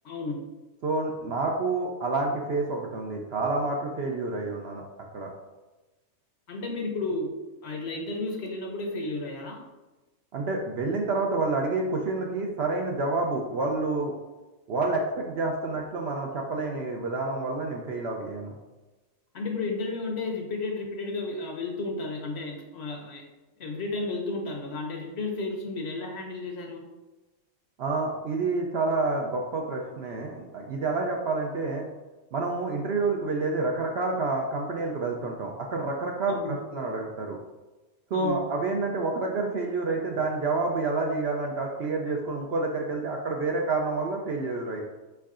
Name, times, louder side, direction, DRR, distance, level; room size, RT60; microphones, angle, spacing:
voice 1, 0.0-0.5 6.5-7.3 7.6-9.6 19.3-23.2 23.6-26.9 36.3-36.6 38.1-38.4, left 3 dB, 60° left, 1 dB, 0.8 m, -33 dB
voice 2, 0.8-4.9 5.1-5.3 10.3-14.1 14.7-18.5 27.8-31.9 32.3-37.4 38.1-44.8, right 3 dB, 65° right, 1 dB, 0.7 m, -28 dB
4.6 x 4.5 x 2.4 m, 1.1 s
omnidirectional pair, 1.4 m